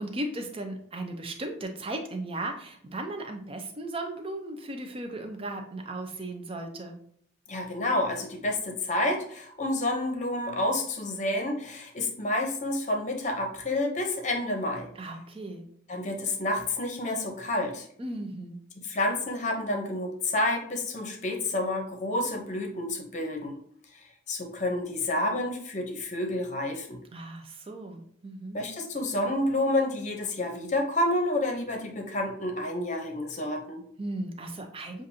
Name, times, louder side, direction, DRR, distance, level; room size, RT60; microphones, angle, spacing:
voice 1, 0.0-7.0 14.9-15.7 18.0-18.6 27.1-28.6 34.0-35.1, right 1 dB, 30° right, 4 dB, 0.6 m, -36 dB
voice 2, 7.5-14.9 15.9-17.9 18.8-23.6 23.9-27.0 28.5-33.8, left 1 dB, 35° left, 2 dB, 0.8 m, -29 dB
7.0 x 2.5 x 2.7 m, 0.65 s
head